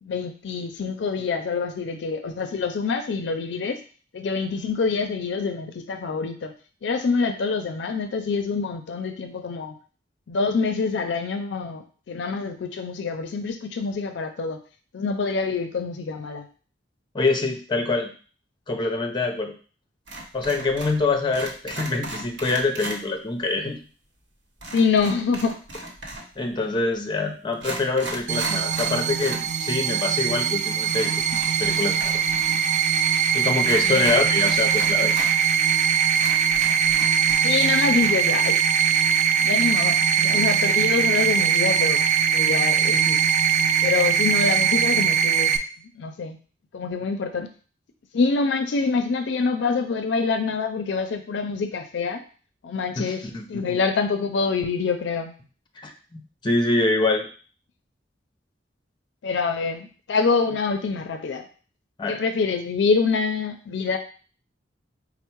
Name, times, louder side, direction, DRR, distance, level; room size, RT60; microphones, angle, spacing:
voice 1, 0.0-3.8 4.1-6.5 6.8-9.8 10.3-14.6 14.9-16.5 24.7-25.6 33.8-34.1 37.4-38.6 39.4-42.0 42.3-43.2 43.8-45.5 45.9-46.4 46.7-47.5 48.1-52.2 52.6-53.2 53.5-55.3 59.2-61.5 62.1-64.0, left 4 dB, 70° left, 7 dB, 0.4 m, -25 dB
voice 2, 17.1-18.1 18.7-19.5 20.3-23.8 26.4-32.2 33.3-35.1 53.0-53.8 55.8-57.3 62.0-62.2, left 3 dB, 25° left, 4 dB, 0.6 m, -25 dB
sound 1, 20.1-21.0 21.3-23.0 24.6-26.4 27.1-27.2 27.5-29.5 29.8-29.9 30.9-32.6 32.8-32.9 33.6-35.3 35.8-35.9 36.2-37.6 37.9-38.1, right 2 dB, 75° right, 1.0 m, -35 dB
sound 2, 28.3-45.6, right 8 dB, 40° right, 0.3 m, -21 dB
4.4 x 2.0 x 4.4 m, 0.39 s
head